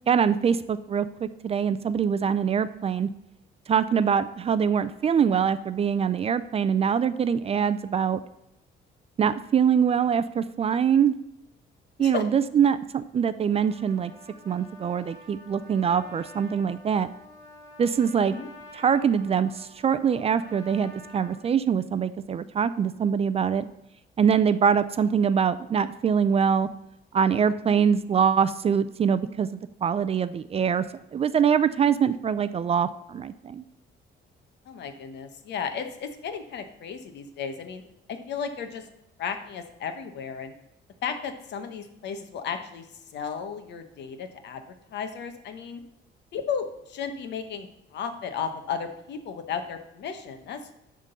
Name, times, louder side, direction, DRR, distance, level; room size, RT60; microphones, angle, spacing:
voice 1, 0.1-3.1 3.7-8.2 9.2-11.1 12.0-14.1 14.5-17.1 17.8-18.4 18.7-23.6 24.2-26.7 27.1-30.8 31.1-33.6, right 7 dB, 35° right, 14 dB, 0.4 m, -24 dB
Trumpet, 13.4-21.4, left 1 dB, 20° left, 3.0 m, -48 dB
voice 2, 34.7-37.8 38.1-38.8 39.2-40.5 41.0-42.9 43.1-44.6 44.9-45.8 46.3-50.8, left 6 dB, 70° left, 8 dB, 1.1 m, -34 dB
11.0 x 3.8 x 6.7 m, 0.84 s
cardioid pair, 140°, 19 cm